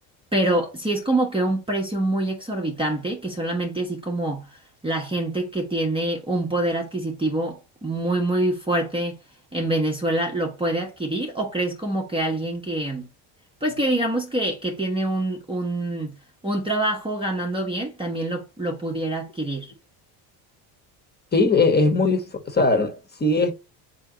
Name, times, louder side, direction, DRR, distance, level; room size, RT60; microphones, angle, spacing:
voice 1, 0.3-9.2 9.5-13.1 13.6-16.2 16.4-19.7, right 1 dB, 10° right, 0.8 m, -25 dB
voice 2, 21.3-23.5, left 3 dB, 20° left, 1.1 m, -20 dB
3.4 x 2.9 x 4.7 m
supercardioid pair, 95°, 48 cm